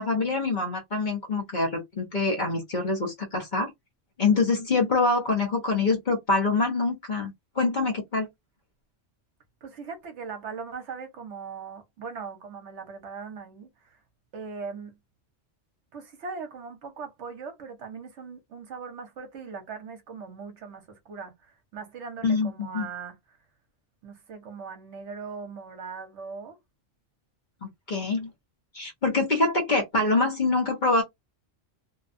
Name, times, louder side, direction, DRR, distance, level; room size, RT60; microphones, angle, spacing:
voice 1, 0.0-3.7 4.2-8.3 22.2-22.9 27.6-28.3 28.7-31.0, left 3 dB, 45° left, 0.9 m, -25 dB
voice 2, 9.6-14.0 14.3-14.9 15.9-23.4 24.0-26.6, right 5 dB, 65° right, 1.0 m, -40 dB
2.7 x 2.2 x 2.5 m
omnidirectional pair, 1.3 m